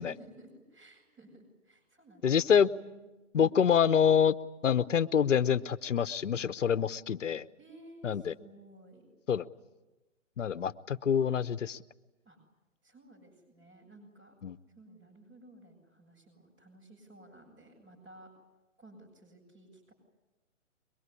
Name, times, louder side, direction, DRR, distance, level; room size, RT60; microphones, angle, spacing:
voice 1, 0.0-3.1 3.3-3.7 7.6-9.1 12.2-12.4 12.8-14.4 14.7-18.3 18.8-19.9, right 1 dB, 15° right, -5 dB, 6.9 m, -55 dB
voice 2, 2.2-2.7 3.3-4.3 4.6-7.5 8.0-8.3 9.3-9.5 10.4-11.8 14.4-14.6, left 8 dB, 70° left, 15 dB, 1.0 m, -26 dB
23.5 x 22.0 x 9.9 m, 1.1 s
hypercardioid pair, 170°, 39 cm